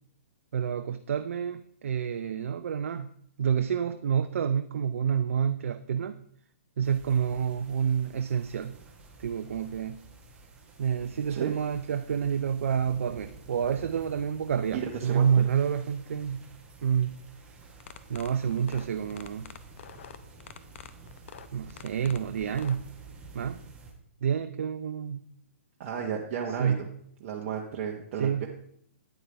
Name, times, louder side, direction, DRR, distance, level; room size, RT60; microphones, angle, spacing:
voice 1, 0.5-3.1 3.4-6.1 6.8-8.7 9.2-10.0 10.8-16.4 16.8-17.2 18.1-19.5 21.5-22.9 23.3-23.6 24.2-25.2 26.6-26.8 28.2-28.5, right 8 dB, 65° right, 9 dB, 0.5 m, -28 dB
sound 1, 6.8-23.9, right 3 dB, 10° right, 1.5 m, -51 dB
voice 2, 14.7-15.4 25.8-26.9 27.2-28.5, right 7 dB, 40° right, -1 dB, 1.1 m, -33 dB
sound 2, 17.7-22.8, left 8 dB, 60° left, 0.7 m, -46 dB
9.3 x 9.0 x 3.4 m, 0.64 s
hypercardioid pair, 135°, 7 cm